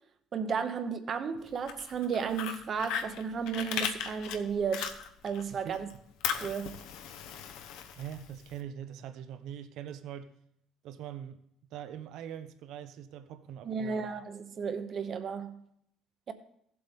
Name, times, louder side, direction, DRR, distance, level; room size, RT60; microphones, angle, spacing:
voice 1, 0.3-5.0 5.2-5.9 6.4-6.8 13.6-15.6 16.3-16.4, right 6 dB, 35° right, 0.8 m, -33 dB
Fire, 1.5-5.4 5.7-8.5, left 8 dB, 75° left, 0.9 m, -37 dB
voice 2, 7.9-10.3 10.8-11.4 11.7-14.1, right 9 dB, 65° right, 0.7 m, -43 dB
16.0 x 7.8 x 3.6 m
cardioid pair, 165°, 0 cm